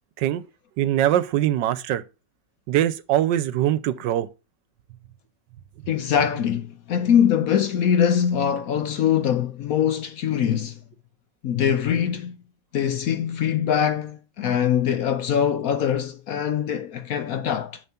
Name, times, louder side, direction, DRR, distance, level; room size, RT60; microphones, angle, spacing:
voice 1, 0.8-2.0 2.7-4.3, right 12 dB, 85° right, 1.3 m, -22 dB
voice 2, 5.9-10.8 11.4-12.4 12.7-17.8, left 8 dB, 65° left, 0.9 m, -23 dB
7.1 x 6.9 x 4.2 m
omnidirectional pair, 1.9 m